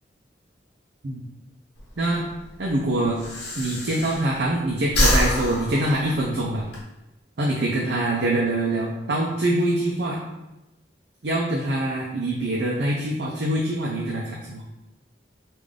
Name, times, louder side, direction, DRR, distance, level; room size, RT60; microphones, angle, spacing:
Breathing, 1.8-4.5 4.8-6.8, left 1 dB, 75° left, 0.9 m, -25 dB
voice 1, 2.0-2.3 2.6-3.2 3.6-6.7 7.4-10.2 11.2-14.6, right 1 dB, 70° right, -3 dB, 0.5 m, -24 dB
3.6 x 2.5 x 3.4 m, 0.96 s
head